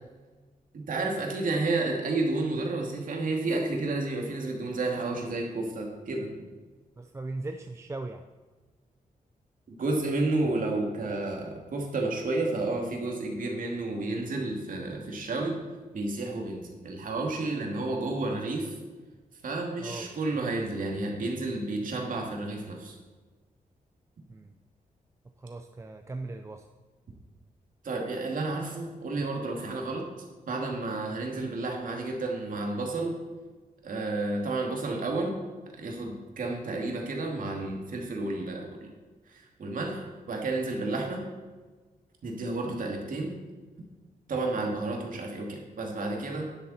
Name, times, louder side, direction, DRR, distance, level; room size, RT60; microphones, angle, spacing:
voice 1, 0.7-6.3 9.7-15.6 15.9-18.7 19.4-22.9 27.8-30.0 30.5-33.2 33.8-35.4 35.7-38.9 39.3-41.2 42.2-43.3 44.3-46.5, right 2 dB, 65° right, 1 dB, 2.4 m, -31 dB
voice 2, 7.0-8.2 19.8-20.6 24.3-24.5 25.4-26.7, right 2 dB, 20° right, 6 dB, 0.5 m, -39 dB
11.0 x 10.5 x 4.3 m, 1.3 s
wide cardioid pair, 170°, 15 cm